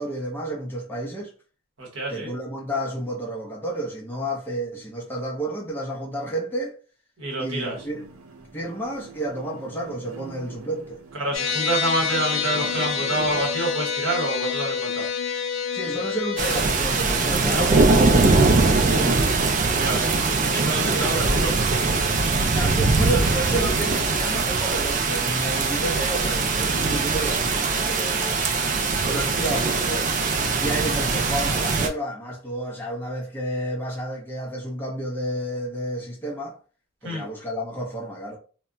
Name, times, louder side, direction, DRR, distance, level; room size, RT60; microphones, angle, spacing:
voice 1, 0.0-1.3 2.1-6.8 7.4-8.0 8.5-11.0 15.7-19.3 20.9-21.1 22.5-28.4 29.0-30.1 30.6-36.6 37.0-38.4, right 1 dB, 10° left, 0.6 m, -31 dB
voice 2, 1.8-2.3 7.2-7.8 11.1-15.1 17.3-17.9 19.8-20.1 20.5-21.6 37.0-37.3, right 1 dB, 65° right, 1.1 m, -28 dB
sound 1, 7.6-13.4, right 5 dB, 85° right, 0.6 m, -43 dB
sound 2, 11.3-16.6, left 6 dB, 65° left, 0.5 m, -27 dB
sound 3, 16.4-31.9, right 3 dB, 40° right, 0.3 m, -21 dB
2.1 x 2.1 x 3.7 m
head